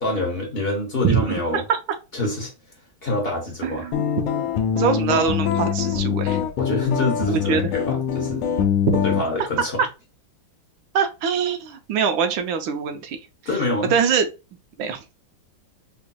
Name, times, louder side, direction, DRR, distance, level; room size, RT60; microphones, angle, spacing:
voice 1, 0.0-1.6 2.1-2.5 3.0-3.9 6.6-8.5 9.0-9.8 13.4-13.9, left 2 dB, 45° left, 0.7 m, -26 dB
voice 2, 1.0-1.6 3.6-4.0 4.8-6.4 7.3-7.6 8.9-9.0 9.8-9.9 10.9-13.2 13.9-14.3 14.8-15.0, right 7 dB, 75° right, 1.3 m, -23 dB
sound 1, 3.9-9.3, left 8 dB, 80° left, 1.4 m, -23 dB
5.0 x 2.7 x 2.2 m
omnidirectional pair, 2.3 m